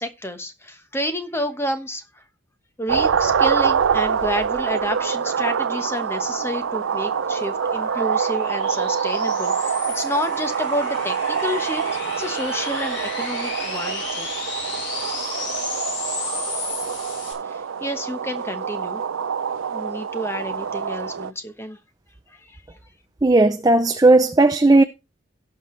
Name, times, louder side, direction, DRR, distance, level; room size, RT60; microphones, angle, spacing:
voice 1, 0.0-2.0 2.8-11.8 12.2-14.3 17.5-19.0 19.7-21.8, equal, 10° left, 1.1 m, -29 dB
sound 1, 2.9-21.3, right 7 dB, 85° right, 0.4 m, -25 dB
sound 2, 5.8-17.3, left 3 dB, 65° left, 4.1 m, -34 dB
voice 2, 23.2-24.8, right 2 dB, 20° right, 0.4 m, -15 dB
17.5 x 5.9 x 3.2 m
head